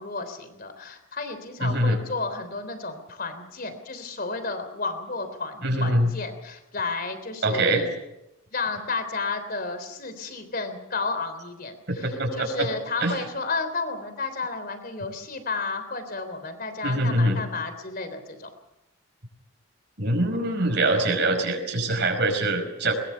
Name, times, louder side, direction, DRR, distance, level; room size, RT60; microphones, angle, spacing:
voice 1, 0.0-7.9 8.5-18.5, left 3 dB, 45° left, 9 dB, 3.5 m, -32 dB
voice 2, 1.6-2.0 5.6-6.1 7.4-7.8 12.0-12.7 13.0-13.1 16.8-17.4 20.0-22.9, right 1 dB, 55° right, 3 dB, 5.3 m, -23 dB
21.5 x 21.0 x 6.9 m, 0.89 s
head